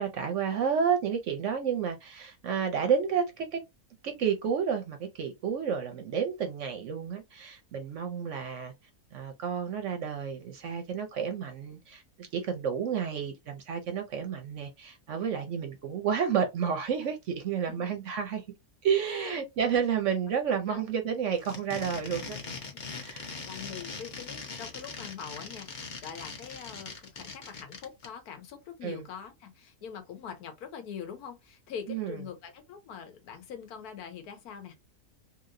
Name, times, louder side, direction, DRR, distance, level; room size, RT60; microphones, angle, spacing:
voice 1, 0.0-3.6 4.0-8.7 9.1-18.4 18.8-22.4 23.0-23.4 28.8-29.1 31.9-32.2, right 7 dB, 65° right, 0.8 m, -31 dB
voice 2, 19.0-19.4 20.7-20.9 23.5-34.8, left 7 dB, 80° left, 1.3 m, -43 dB
sound 1, 21.3-28.1, left 4 dB, 45° left, 0.6 m, -41 dB
2.9 x 2.8 x 2.5 m
omnidirectional pair, 1.6 m